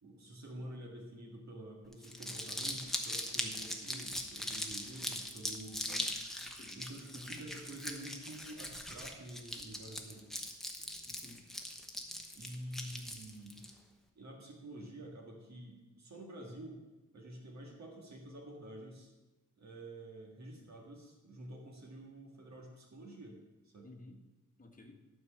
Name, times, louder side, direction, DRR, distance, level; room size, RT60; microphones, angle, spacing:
voice 1, 0.0-6.1 6.7-10.5 12.3-13.7 14.2-16.8 17.1-19.1 19.6-23.9, right 1 dB, 55° right, 0 dB, 1.8 m, -49 dB
Crumpling crinkling, 1.9-13.7, left 1 dB, ahead, 0.9 m, -40 dB
voice 2, 6.4-6.8 7.1-7.4 11.1-11.4 20.6-20.7 23.8-24.2 24.6-24.9, left 2 dB, 25° left, 2 dB, 1.3 m, -55 dB
12.5 x 4.7 x 7.2 m, 1.1 s
wide cardioid pair, 170°, 32 cm